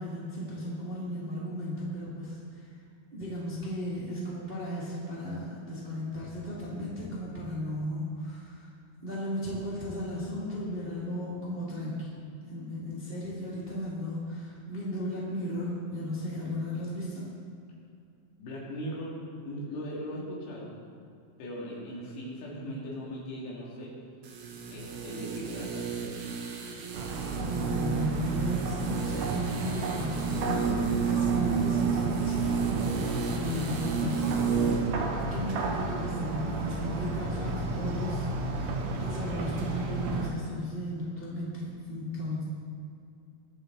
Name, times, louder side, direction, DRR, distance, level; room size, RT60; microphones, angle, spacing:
voice 1, 0.0-2.7 3.1-8.7 9.0-12.1 12.5-17.2 27.4-32.5 33.2-35.0 35.3-42.4, equal, 20° right, -8 dB, 2.0 m, -35 dB
voice 2, 18.4-20.7 21.4-24.0 24.7-25.9, equal, 80° left, -5 dB, 4.8 m, -39 dB
sound 1, 24.2-34.9 35.2-35.3, right 6 dB, 65° right, 2.2 m, -31 dB
sound 2, 26.9-40.3, right 3 dB, 80° right, 1.6 m, -33 dB
22.5 x 7.7 x 4.1 m, 2.4 s
omnidirectional pair, 4.8 m